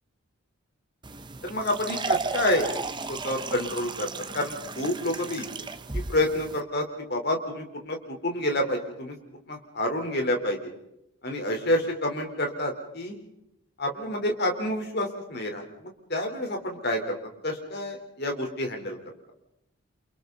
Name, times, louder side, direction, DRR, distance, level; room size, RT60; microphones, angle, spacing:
sound 1, 1.0-6.6, right 4 dB, 20° right, 0.8 m, -34 dB
voice 1, 1.4-2.7 3.1-5.5 5.9-9.2 9.5-10.7 11.2-13.2 13.8-17.2 17.4-19.0, left 1 dB, 50° left, 3 dB, 4.1 m, -28 dB
30.0 x 28.0 x 4.1 m, 0.84 s
head